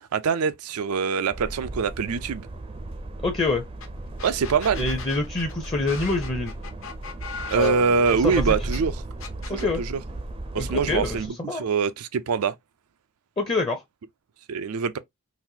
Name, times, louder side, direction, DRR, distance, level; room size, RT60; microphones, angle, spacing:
voice 1, 0.0-2.5 4.2-4.9 7.5-8.9 9.5-10.0 10.5-12.5 14.5-15.0, right 5 dB, 85° right, 0.4 m, -24 dB
sound 1, 1.3-11.3, right 2 dB, 25° right, 0.4 m, -35 dB
voice 2, 3.2-3.6 4.8-6.5 7.5-8.5 9.5-9.8 10.6-11.6 13.4-13.8, left 3 dB, 25° left, 0.5 m, -26 dB
sound 2, 3.8-3.9 4.2-8.8 9.2-9.7, left 5 dB, 60° left, 0.8 m, -39 dB
4.0 x 2.5 x 2.7 m
head